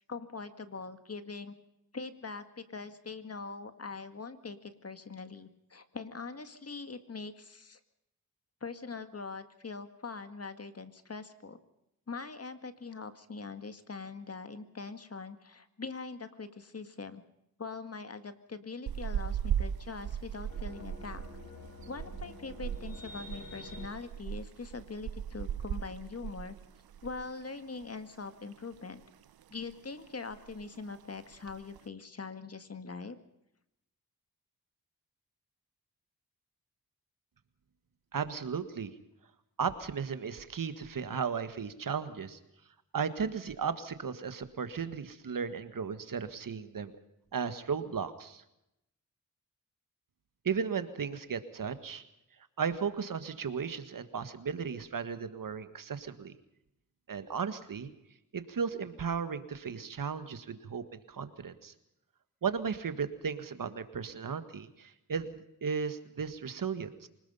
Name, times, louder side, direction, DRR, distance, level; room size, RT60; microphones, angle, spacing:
voice 1, 0.1-1.5 1.9-7.8 8.6-11.6 12.1-17.2 17.6-21.2 21.9-26.6 27.0-29.0 29.5-33.2, left 4 dB, 40° left, 9 dB, 1.9 m, -42 dB
sound 1, 18.9-27.4 27.6-27.9 28.2-29.1 29.4-29.8 30.0-30.1 30.3-30.8 31.3-31.8, right 9 dB, 80° right, 0.8 m, -38 dB
sound 2, 20.5-23.9, left 2 dB, 70° left, 7.1 m, -48 dB
voice 2, 38.1-38.9 39.6-42.4 42.9-46.9 47.3-48.4 50.4-52.0 52.6-56.3 57.1-57.9 58.3-61.7 62.4-65.4 65.6-67.1, right 6 dB, 65° right, 11 dB, 1.7 m, -35 dB
25.5 x 19.5 x 5.7 m, 0.84 s
cardioid pair, 70°, 35 cm